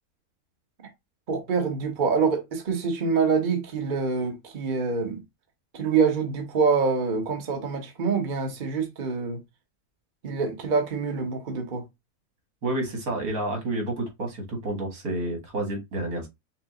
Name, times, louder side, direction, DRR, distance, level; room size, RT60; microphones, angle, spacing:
voice 1, 1.3-5.2 5.7-9.4 10.2-11.8, right 5 dB, 40° right, 1.0 m, -25 dB
voice 2, 12.6-16.3, right 2 dB, 75° right, 2.0 m, -29 dB
5.7 x 2.1 x 3.7 m
omnidirectional pair, 1.5 m